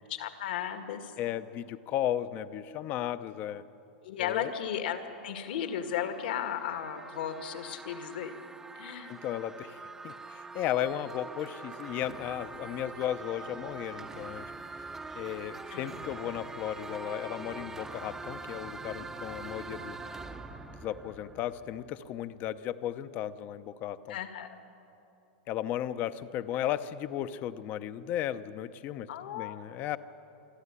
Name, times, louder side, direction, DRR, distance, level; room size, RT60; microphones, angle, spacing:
voice 1, 0.1-1.1 4.0-8.3 8.7-9.2 15.7-16.0 16.3-16.4 24.1-24.6 29.1-29.6, left 9 dB, 65° left, 7 dB, 2.0 m, -35 dB
voice 2, 1.2-3.6 4.2-4.5 9.1-9.8 10.0-14.4 15.2-20.0 20.8-24.2 25.5-30.0, left 11 dB, 30° left, 13 dB, 0.7 m, -35 dB
sound 1, 5.1-22.1, right 3 dB, 10° right, 0.8 m, -44 dB
26.0 x 13.0 x 9.8 m, 2.8 s
supercardioid pair, 155°, 5 cm